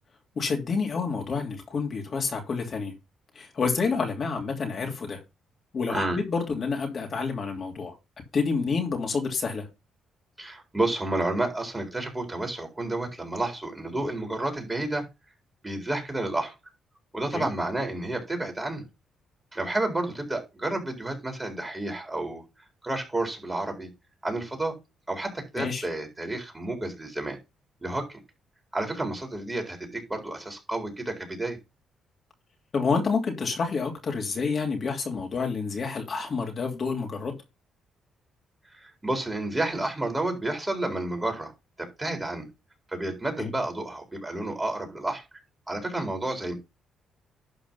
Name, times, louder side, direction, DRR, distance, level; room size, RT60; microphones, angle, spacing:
voice 1, 0.4-2.9 3.3-5.2 5.7-7.9 8.3-9.6 17.3-17.5 25.6-25.8 32.7-37.3 43.4-43.5, left 4 dB, 45° left, 2.8 m, -28 dB
voice 2, 10.4-15.1 15.6-16.5 17.1-18.8 19.5-22.4 22.8-23.9 24.2-24.8 25.1-27.4 27.8-28.2 28.7-31.6 38.6-41.5 41.8-42.5 42.9-45.2 45.7-46.5, right 2 dB, 15° right, 4.2 m, -30 dB
12.0 x 4.8 x 5.4 m
cardioid pair, 90°, 0 cm